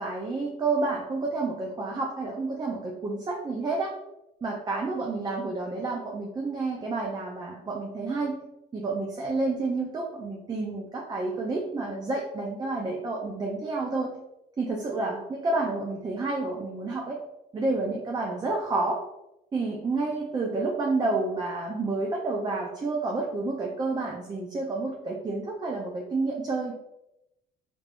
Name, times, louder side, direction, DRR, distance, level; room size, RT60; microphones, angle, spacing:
voice 1, 0.0-3.9 4.4-8.4 8.7-14.2 14.6-17.2 17.5-19.0 19.5-26.7, right 3 dB, 25° right, -1 dB, 0.5 m, -29 dB
3.4 x 3.3 x 2.5 m, 0.89 s
cardioid pair, 110°, 17 cm